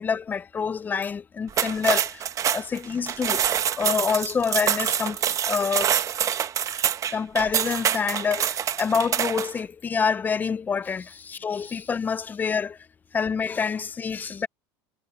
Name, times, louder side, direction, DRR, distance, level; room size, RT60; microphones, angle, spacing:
voice 1, 0.0-3.5 3.8-5.9 7.1-11.1 11.4-12.8 13.1-14.5, left 6 dB, 15° left, 0.3 m, -27 dB
sound 1, 1.5-9.6, right 9 dB, 30° right, 0.8 m, -26 dB
supercardioid pair, 145°, 11 cm